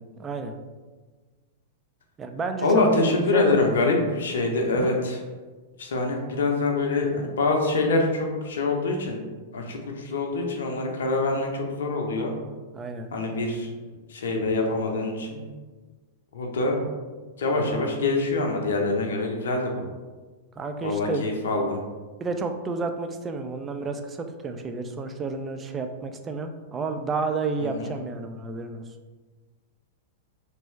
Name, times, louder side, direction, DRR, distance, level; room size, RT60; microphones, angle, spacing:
voice 1, 0.2-0.5 2.2-2.9 3.3-3.6 4.8-4.9 12.7-13.1 20.6-21.3 22.2-28.8, right 4 dB, 20° right, 6 dB, 0.3 m, -31 dB
voice 2, 2.6-5.2 5.8-9.2 9.5-12.3 13.1-13.7 14.1-15.4 16.3-16.8 17.4-19.8 20.8-21.8 27.6-27.9, left 3 dB, 65° left, 2 dB, 0.6 m, -25 dB
3.3 x 3.0 x 3.1 m, 1.3 s
figure-of-eight pair, 95°, 0 cm